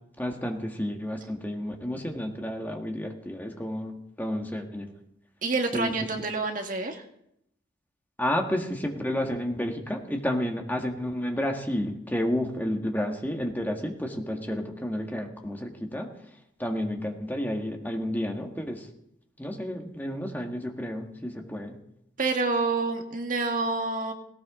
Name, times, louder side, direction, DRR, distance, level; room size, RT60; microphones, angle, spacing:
voice 1, 0.2-4.9 5.7-5.9 8.2-16.1 16.6-18.9 19.4-21.8, equal, 10° left, 2 dB, 1.6 m, -31 dB
voice 2, 5.4-7.0 22.2-24.1, right 3 dB, 45° right, 4 dB, 1.7 m, -28 dB
18.0 x 18.0 x 3.8 m, 0.75 s
head